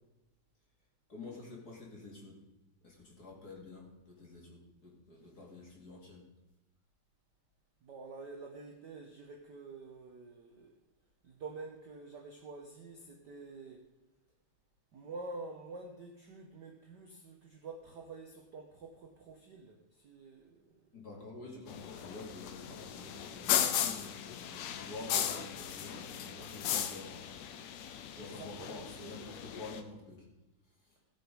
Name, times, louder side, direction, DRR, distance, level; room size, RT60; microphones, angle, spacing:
voice 1, 1.1-2.4 2.8-6.2 20.9-27.4 28.1-30.3, left 3 dB, 30° left, -2 dB, 2.8 m, -48 dB
voice 2, 7.8-10.8 11.2-13.8 14.9-20.9 28.2-29.3, right 3 dB, 70° right, 2 dB, 1.0 m, -48 dB
sound 1, 21.7-29.8, left 10 dB, 75° left, 1.9 m, -36 dB
16.0 x 6.7 x 5.3 m, 1.0 s
omnidirectional pair, 3.5 m